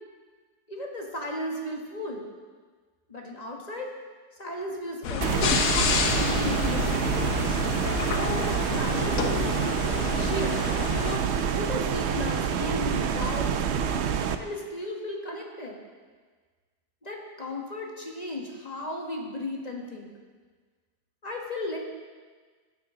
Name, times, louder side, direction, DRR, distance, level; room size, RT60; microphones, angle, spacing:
voice 1, 0.7-2.3 3.1-3.9 4.4-5.8 6.1-7.1 8.0-8.5 8.7-9.4 10.1-10.6 11.0-14.1 14.4-15.8 17.0-20.1 21.2-21.8, left 1 dB, 25° left, 0 dB, 1.5 m, -35 dB
sound 1, 5.0-11.2, left 6 dB, 60° left, 1.2 m, -29 dB
sound 2, 5.2-14.4, right 7 dB, 65° right, 0.6 m, -27 dB
sound 3, 7.8-12.8, left 1 dB, 85° left, 4.4 m, -48 dB
14.5 x 10.0 x 3.8 m, 1.5 s
omnidirectional pair, 1.8 m